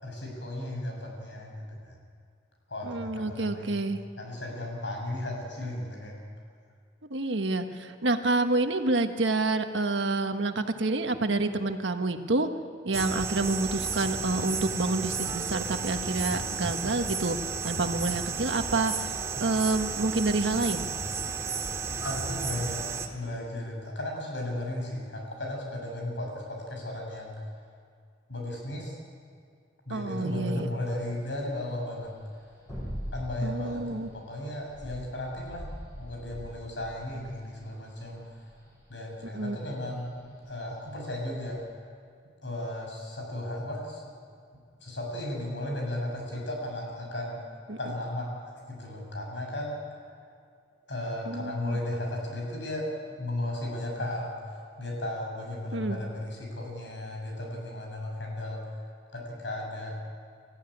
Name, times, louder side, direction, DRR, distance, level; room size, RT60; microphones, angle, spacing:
voice 1, 0.0-2.0 2.7-3.8 4.2-6.2 22.0-22.9 23.1-27.4 28.3-28.9 29.8-32.1 33.1-38.3 38.9-41.6 42.4-44.1 44.8-47.4 47.8-50.0 50.9-60.0, left 1 dB, 80° left, 0 dB, 6.6 m, -35 dB
voice 2, 2.9-4.0 7.1-12.5 12.8-17.4 17.6-19.1 19.4-20.9 29.9-30.7 33.4-34.1 39.3-39.6 47.7-47.8 51.3-51.8 55.7-56.0, right 2 dB, 90° right, 6 dB, 1.4 m, -28 dB
sound 1, 12.9-23.1, right 5 dB, 15° right, 1.8 m, -33 dB
sound 2, 30.8-41.6, equal, 20° left, 6.9 m, -43 dB
25.0 x 14.5 x 10.0 m, 2.2 s
head